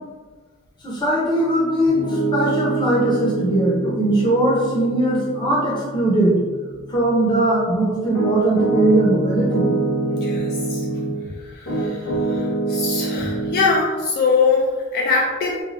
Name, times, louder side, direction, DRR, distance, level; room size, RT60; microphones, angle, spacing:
voice 1, 0.8-6.4 6.9-9.7, right 1 dB, 25° left, -5 dB, 0.8 m, -20 dB
Piano, 1.9-11.2 11.7-13.7, right 3 dB, 70° left, 0.8 m, -25 dB
voice 2, 10.1-10.9 11.4-15.6, left 4 dB, 50° left, -2 dB, 0.3 m, -22 dB
3.1 x 2.3 x 2.5 m, 1.4 s
head